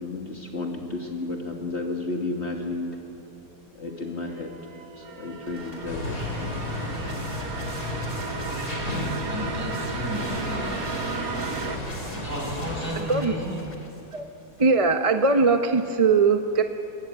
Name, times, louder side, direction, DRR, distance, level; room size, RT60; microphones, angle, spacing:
voice 1, 0.0-3.0 3.8-4.5 5.0-6.8, left 2 dB, 45° left, 1 dB, 2.0 m, -32 dB
sound 1, 4.1-11.8, right 5 dB, 70° right, 1.6 m, -35 dB
sound 2, 5.5-14.7, left 1 dB, 30° left, 3.4 m, -42 dB
sound 3, 5.9-12.9, left 1 dB, 90° left, 4.7 m, -33 dB
voice 2, 9.3-10.8 12.1-13.6, equal, 10° right, -3 dB, 6.5 m, -33 dB
voice 3, 14.6-16.6, right 4 dB, 30° right, 6 dB, 0.7 m, -20 dB
23.0 x 21.5 x 9.1 m, 2.8 s
omnidirectional pair, 1.6 m